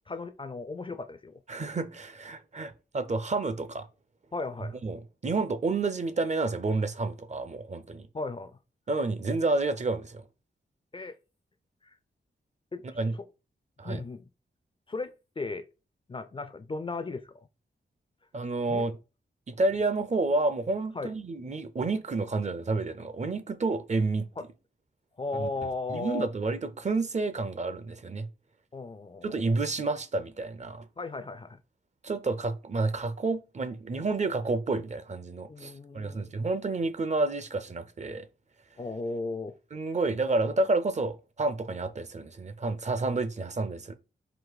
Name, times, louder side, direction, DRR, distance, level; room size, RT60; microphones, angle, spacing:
voice 1, 0.1-1.4 4.3-4.8 8.1-8.6 10.9-11.2 12.7-13.2 13.8-14.3 14.9-15.7 16.1-17.3 18.7-18.8 20.9-21.1 24.4-24.5 25.2-26.3 28.7-29.3 31.0-31.6 35.5-36.2 38.8-39.5, left 3 dB, 25° left, 0.4 m, -36 dB
voice 2, 1.5-3.9 4.8-8.1 8.9-10.2 13.0-13.1 13.8-14.0 18.3-18.9 19.5-24.3 25.4-25.5 25.9-28.3 29.2-30.9 32.0-38.3 39.7-44.0, right 3 dB, 35° right, 0.5 m, -30 dB
4.7 x 2.6 x 3.9 m
wide cardioid pair, 100°, 19 cm